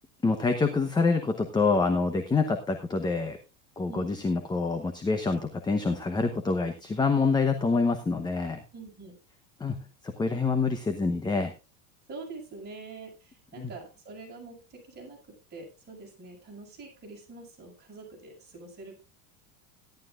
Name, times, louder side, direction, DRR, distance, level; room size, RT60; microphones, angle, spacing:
voice 1, 0.2-3.4 3.8-8.6 9.6-11.5 13.6-13.7, left 4 dB, 10° left, 6 dB, 0.9 m, -26 dB
voice 2, 3.9-4.2 8.7-9.1 12.1-19.0, right 3 dB, 20° right, -2 dB, 6.7 m, -45 dB
16.5 x 11.5 x 2.5 m, 0.28 s
supercardioid pair, 155°, 46 cm